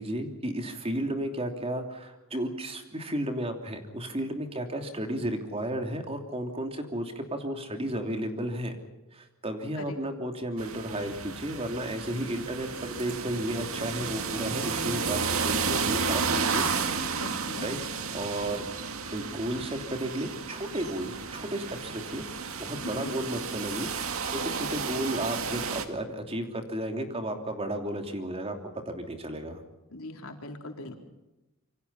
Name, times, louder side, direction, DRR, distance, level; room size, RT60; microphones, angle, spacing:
voice 1, 0.0-8.8 9.1-16.7 17.3-17.8 18.1-18.7 19.1-22.3 22.6-28.6 28.8-29.6, right 1 dB, 25° right, 5 dB, 3.0 m, -33 dB
sound 1, 10.6-25.9, right 5 dB, 75° right, 2.1 m, -32 dB
voice 2, 17.2-17.7 23.0-23.1 29.9-31.0, left 2 dB, 85° left, 3 dB, 4.0 m, -40 dB
27.5 x 24.5 x 5.7 m, 0.99 s
head